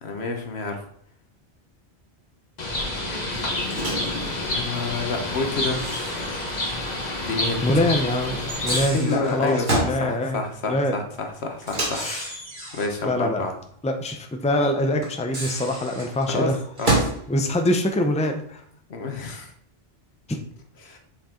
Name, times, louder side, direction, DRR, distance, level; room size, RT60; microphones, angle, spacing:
voice 1, 0.0-0.8 4.5-5.8 7.2-7.6 8.7-12.1 12.7-13.5 16.3-16.5 16.8-17.0 18.9-19.5 20.8-21.0, left 3 dB, 75° left, 4 dB, 1.4 m, -28 dB
Bird, 2.6-8.9, left 1 dB, 40° left, 1.4 m, -28 dB
Microwave oven, 3.7-4.2 5.5-6.9 7.2-7.3 8.4-10.0 11.6-13.0 15.0-17.2, right 2 dB, 50° right, 2.3 m, -29 dB
voice 2, 7.6-10.4 10.6-11.0 12.0-12.3 13.0-13.5 13.8-16.6 17.3-18.6 20.3-20.4, left 1 dB, 10° left, 5 dB, 0.6 m, -24 dB
7.2 x 5.4 x 3.8 m, 0.65 s
omnidirectional pair, 1.1 m